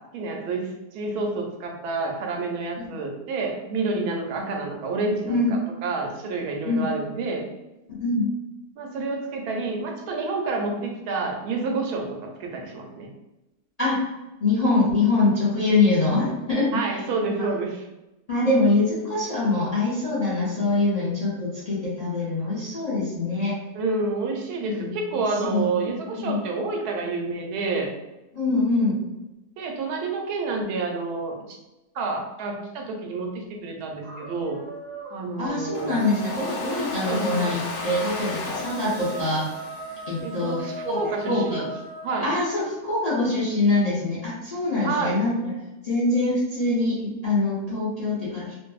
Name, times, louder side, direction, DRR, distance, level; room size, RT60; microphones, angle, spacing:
voice 1, 0.1-5.4 5.8-7.4 8.8-12.1 12.4-13.1 16.7-17.8 23.7-27.9 29.6-31.6 31.9-34.6 35.1-36.0 37.0-37.6 40.2-40.6 40.9-41.7 42.0-42.3 44.8-45.2, right 3 dB, 85° right, 2 dB, 1.1 m, -29 dB
voice 2, 5.2-5.6 6.7-6.9 7.9-8.3 13.8-14.0 14.4-17.0 17.4-17.5 18.3-23.6 24.6-25.9 26.2-26.5 28.3-29.0 35.4-39.5 40.1-41.6 42.2-45.5 45.8-48.6, left 2 dB, 60° left, -9 dB, 0.4 m, -24 dB
sound 1, 34.0-42.3, right 3 dB, 55° right, 0.7 m, -38 dB
Domestic sounds home sounds, 35.7-40.7, left 3 dB, 75° left, 1.1 m, -35 dB
2.6 x 2.5 x 2.3 m, 0.99 s
omnidirectional pair, 1.6 m